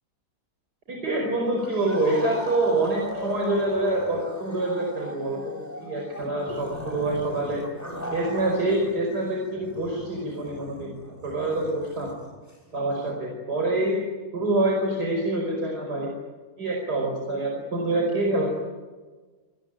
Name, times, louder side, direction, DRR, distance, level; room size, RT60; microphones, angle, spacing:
voice 1, 0.9-7.6 8.1-12.1 12.7-14.0 14.3-16.1 16.6-18.5, right 2 dB, 80° right, 0 dB, 5.6 m, -26 dB
sound 1, 1.6-9.0 9.2-13.1, equal, 10° left, 5.6 m, -37 dB
28.5 x 19.5 x 9.1 m, 1.3 s
omnidirectional pair, 1.7 m